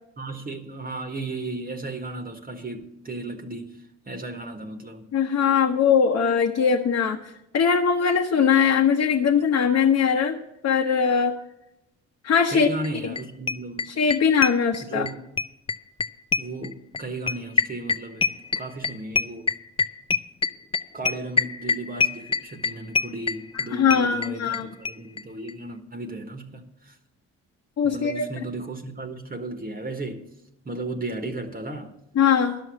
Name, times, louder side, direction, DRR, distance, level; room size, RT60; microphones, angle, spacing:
voice 1, 0.2-5.0 12.5-13.9 14.8-15.3 16.4-19.5 20.9-27.0 27.8-30.3 30.6-31.9, right 2 dB, 30° right, 1.3 m, -35 dB
voice 2, 5.1-7.2 7.5-10.4 10.6-11.4 12.2-12.7 14.0-15.1 23.7-24.7 27.8-28.2 32.2-32.6, left 7 dB, 55° left, 1.0 m, -21 dB
sound 1, 12.8-12.9 13.2-13.3 13.5-15.1 15.4-24.6 24.8-24.9 25.2-25.3 25.5-25.6, left 4 dB, 20° left, 0.5 m, -24 dB
11.0 x 6.3 x 8.5 m
cardioid pair, 90°, 30 cm